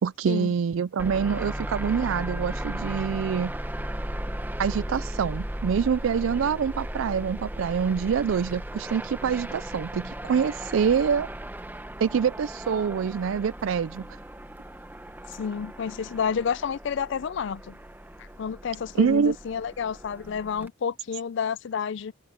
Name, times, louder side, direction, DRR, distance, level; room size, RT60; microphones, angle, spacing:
voice 1, 0.0-3.5 4.6-11.3 12.0-14.2 19.0-19.4, right 6 dB, 70° right, 0.4 m, -25 dB
sound 1, 1.0-20.7, right 1 dB, 10° right, 0.9 m, -36 dB
voice 2, 15.3-17.8 18.2-22.1, left 6 dB, 60° left, 0.4 m, -30 dB
open air
head